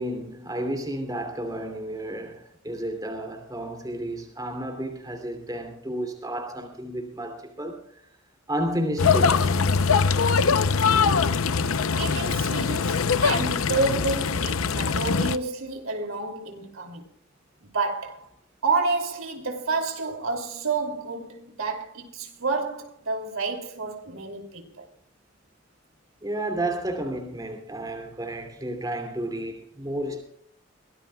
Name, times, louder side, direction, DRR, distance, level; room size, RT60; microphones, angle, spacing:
voice 1, 0.0-8.0 8.5-9.6 26.2-30.2, right 1 dB, 20° right, 2.9 m, -32 dB
sound 1, 9.0-15.4, left 5 dB, 90° left, 0.7 m, -22 dB
voice 2, 12.0-17.1 17.6-18.3 18.6-24.8, right 3 dB, 85° right, 3.0 m, -29 dB
23.0 x 18.0 x 2.3 m
head